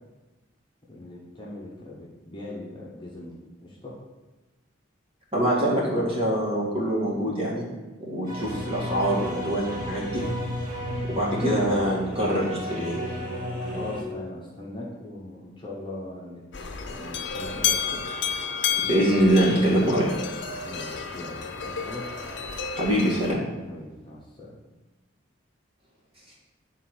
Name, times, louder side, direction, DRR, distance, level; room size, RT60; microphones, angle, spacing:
voice 1, 0.9-3.9 13.6-16.4 16.8-18.1 20.6-22.1 23.6-24.6, left 1 dB, 25° left, -5 dB, 1.0 m, -40 dB
voice 2, 5.3-7.7 8.0-10.2 11.0-13.0 18.8-20.1 22.7-23.4 26.3-26.4, right 1 dB, 30° right, -5 dB, 1.8 m, -24 dB
sound 1, 8.3-14.0, equal, 45° right, 1.7 m, -32 dB
sound 2, 16.5-23.3, left 7 dB, 60° left, 0.6 m, -31 dB
9.1 x 3.7 x 4.6 m, 1.2 s
head